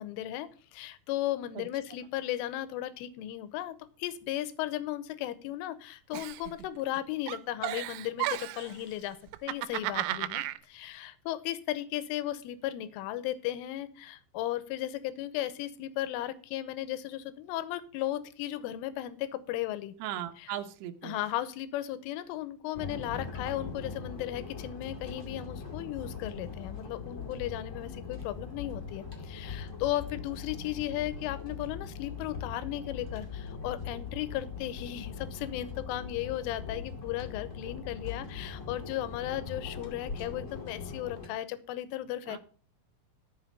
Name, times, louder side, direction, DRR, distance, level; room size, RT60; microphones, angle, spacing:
voice 1, 0.0-9.2 9.4-19.9 20.4-20.5 21.0-42.4, left 13 dB, 85° left, 15 dB, 3.3 m, -35 dB
Giggle, 6.1-7.0 7.3-8.7 9.3-10.6, right 15 dB, 90° right, 3.4 m, -34 dB
voice 2, 20.0-21.2 42.3-42.4, right 11 dB, 75° right, 5 dB, 2.6 m, -38 dB
sound 1, 22.7-41.3, left 5 dB, 50° left, 0.8 m, -41 dB
13.5 x 5.8 x 6.7 m, 0.40 s
omnidirectional pair, 5.9 m